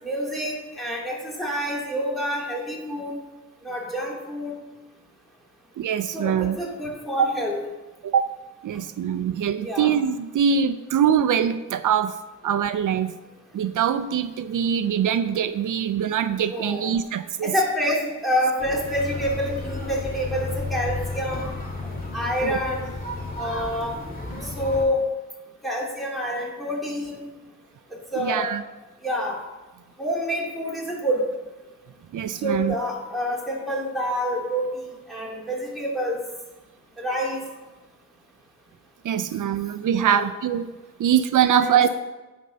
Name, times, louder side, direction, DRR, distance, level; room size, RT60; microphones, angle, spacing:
voice 1, 0.0-3.2 3.6-4.5 6.1-7.6 9.6-9.9 16.5-16.9 17.4-21.5 21.8-22.8 23.4-23.9 24.6-25.1 25.6-27.3 27.9-28.5 29.0-29.4 30.0-31.2 32.4-36.2 37.0-37.4 40.0-40.3 41.6-41.7, equal, ahead, -4 dB, 2.6 m, -27 dB
voice 2, 5.8-6.6 7.2-7.3 8.0-8.3 8.6-12.2 12.4-13.2 13.5-17.5 22.4-22.5 28.2-28.6 32.1-32.7 39.0-40.7 41.0-41.9, right 8 dB, 80° right, 12 dB, 0.4 m, -23 dB
sound 1, 18.6-24.8, left 2 dB, 30° left, 2.2 m, -33 dB
9.2 x 4.5 x 6.3 m, 1.2 s
wide cardioid pair, 85°, 30 cm